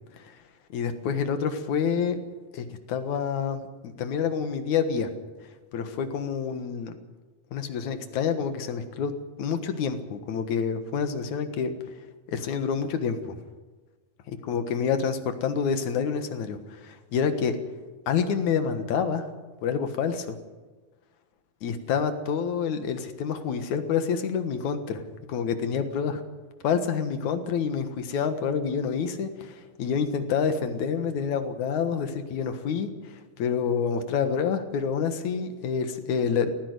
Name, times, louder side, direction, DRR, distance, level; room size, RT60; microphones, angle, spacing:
voice 1, 0.7-2.2 2.5-5.1 5.7-6.9 7.5-9.1 9.4-11.7 12.3-13.4 14.5-17.6 18.1-19.3 19.6-20.4 21.6-25.0 25.3-26.2 26.6-32.9 33.4-36.5, left 6 dB, 70° left, 9 dB, 2.9 m, -27 dB
18.0 x 15.5 x 9.5 m, 1.3 s
omnidirectional pair, 3.5 m